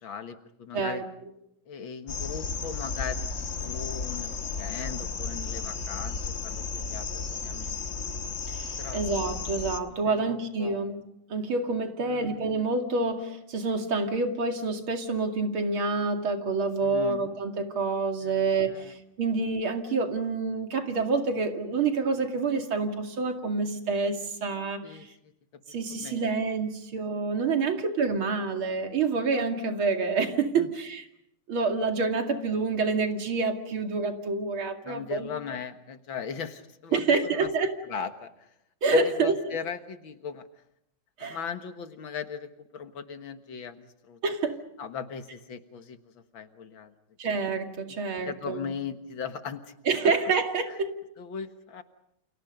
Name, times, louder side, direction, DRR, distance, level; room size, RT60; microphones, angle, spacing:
voice 1, 0.0-1.0 1.7-3.3 3.6-7.8 8.8-9.1 10.1-10.9 12.0-12.4 16.8-17.3 18.2-18.9 24.8-25.3 25.7-26.4 27.6-27.8 30.5-30.7 34.8-37.5 37.9-38.5 38.9-40.5 41.2-44.2 44.8-46.9 48.3-49.7 50.0-50.1 50.7-50.8 51.2-51.8, left 6 dB, 75° left, 8 dB, 2.3 m, -39 dB
sound 1, 2.1-9.8, left 4 dB, 40° left, 1.7 m, -34 dB
voice 2, 8.5-11.0 11.3-25.1 25.7-31.0 31.5-35.3 36.9-37.7 38.8-39.6 41.2-41.4 44.2-44.6 47.2-48.7 49.9-50.9, right 4 dB, 85° right, 5 dB, 3.2 m, -27 dB
29.5 x 29.0 x 5.3 m, 0.79 s
omnidirectional pair, 2.2 m